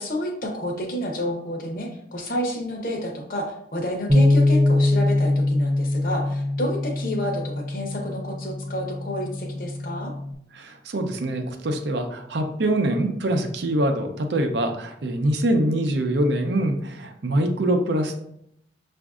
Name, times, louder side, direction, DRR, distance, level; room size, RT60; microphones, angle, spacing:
voice 1, 0.0-10.1, left 1 dB, 50° left, 1 dB, 0.8 m, -30 dB
Bass guitar, 4.1-10.3, left 2 dB, 20° right, 0.4 m, -23 dB
voice 2, 10.5-18.1, right 1 dB, 85° right, 5 dB, 0.5 m, -24 dB
6.0 x 2.5 x 2.4 m, 0.75 s
head